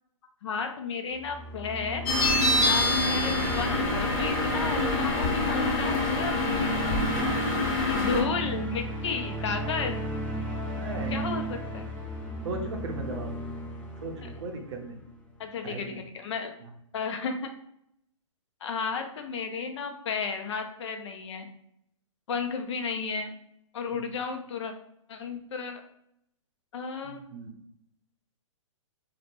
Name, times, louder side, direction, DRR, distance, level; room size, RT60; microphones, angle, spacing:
voice 1, 0.4-2.0 2.6-6.6 7.3-10.0 11.1-11.9 15.4-16.5 16.9-17.5 18.6-21.5 22.3-23.3 23.7-24.7 25.1-25.8 26.7-27.2, left 5 dB, 60° left, 6 dB, 0.4 m, -33 dB
sound 1, 1.1-15.3, right 1 dB, 10° left, 0.5 m, -35 dB
sound 2, 2.1-8.2, left 2 dB, 40° left, 0.8 m, -26 dB
voice 2, 10.6-11.3 12.4-13.3 14.0-15.0 15.6-16.0 16.6-16.7 23.9-24.1 27.0-27.5, right 3 dB, 55° right, 3 dB, 0.6 m, -38 dB
2.1 x 2.1 x 2.8 m, 0.75 s
hypercardioid pair, 130°, 17 cm